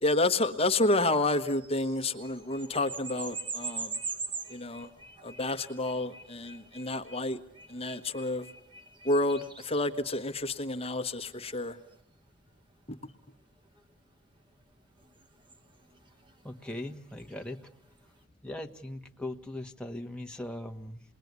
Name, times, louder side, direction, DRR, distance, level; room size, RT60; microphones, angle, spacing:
voice 1, 0.0-3.9 4.5-4.9 5.2-7.4 7.7-8.4 9.0-11.8, left 2 dB, 30° left, 7 dB, 1.3 m, -29 dB
sound 1, 1.4-12.0 13.8-13.9 15.0-17.9, right 4 dB, 25° right, 1.6 m, -43 dB
voice 2, 16.4-17.6 18.4-21.0, left 1 dB, 5° left, 3 dB, 1.4 m, -39 dB
28.5 x 21.5 x 9.5 m, 0.69 s
head